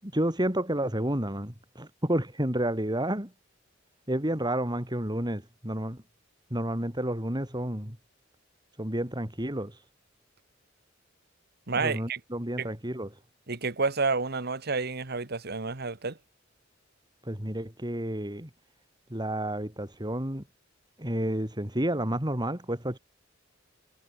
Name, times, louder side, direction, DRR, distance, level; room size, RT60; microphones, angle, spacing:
voice 1, 0.0-3.3 4.1-6.0 6.5-8.0 8.8-9.8 11.8-13.1 17.2-18.5 19.1-20.4 21.0-23.0, right 1 dB, 20° right, 7.1 m, -30 dB
voice 2, 11.7-12.2 12.6-12.7 13.5-16.2, right 4 dB, 55° right, 1.7 m, -29 dB
head